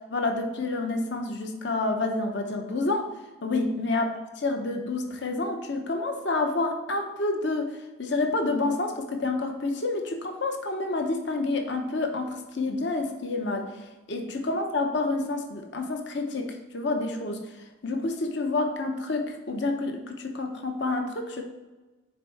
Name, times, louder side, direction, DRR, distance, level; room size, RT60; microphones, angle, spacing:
voice 1, 0.0-3.1 3.4-4.1 4.4-17.4 17.8-21.4, left 2 dB, 55° left, 4 dB, 0.9 m, -28 dB
6.6 x 4.5 x 4.6 m, 1.1 s
head